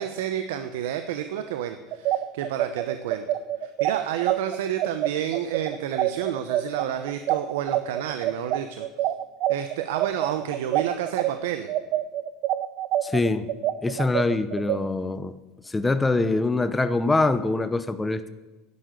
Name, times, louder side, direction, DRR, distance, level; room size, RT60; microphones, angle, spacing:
voice 1, 0.0-3.3 3.6-8.9 9.5-11.7, right 10 dB, 85° right, 8 dB, 0.9 m, -30 dB
sound 1, 1.9-11.3 11.7-14.8, right 14 dB, 55° right, 0.6 m, -26 dB
voice 2, 13.0-13.5 13.8-15.3 15.7-18.3, left 3 dB, 10° left, 11 dB, 0.6 m, -24 dB
11.5 x 9.9 x 8.2 m, 1.1 s
supercardioid pair, 135°, 0 cm